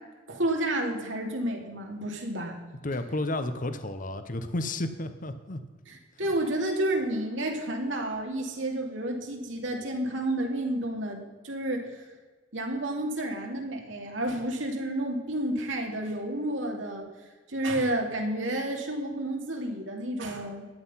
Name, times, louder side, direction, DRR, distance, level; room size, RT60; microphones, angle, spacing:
voice 1, 0.3-2.6 5.9-12.0 12.5-17.1 17.5-20.7, right 1 dB, 80° right, 1 dB, 2.8 m, -30 dB
voice 2, 2.8-5.6, left 2 dB, 45° left, 9 dB, 0.9 m, -32 dB
13.5 x 10.5 x 5.7 m, 1.3 s
head